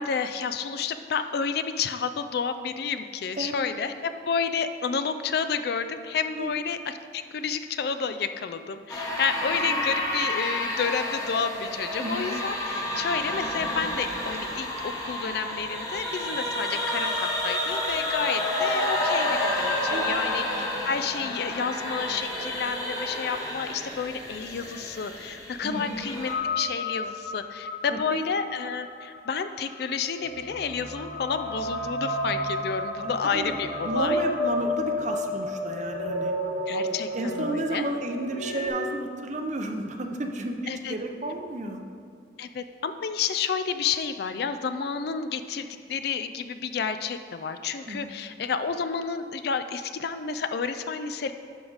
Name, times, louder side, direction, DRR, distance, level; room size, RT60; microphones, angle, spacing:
voice 1, 0.0-20.4 20.8-34.2 36.7-37.8 40.7-40.9 42.4-51.3, left 6 dB, 55° left, 10 dB, 0.3 m, -30 dB
voice 2, 3.3-3.7 6.4-6.5 9.7-9.9 12.0-12.3 19.9-20.2 25.6-26.0 27.9-28.3 33.0-33.5 33.8-36.3 36.8-41.8 47.9-48.1, right 1 dB, 40° right, 4 dB, 0.6 m, -32 dB
Ghostly Ghouly Screaming, 8.9-26.3, left 1 dB, 15° left, 1.0 m, -30 dB
sound 1, 26.2-38.7, left 1 dB, 80° left, 1.3 m, -31 dB
12.0 x 4.9 x 4.0 m, 2.3 s
head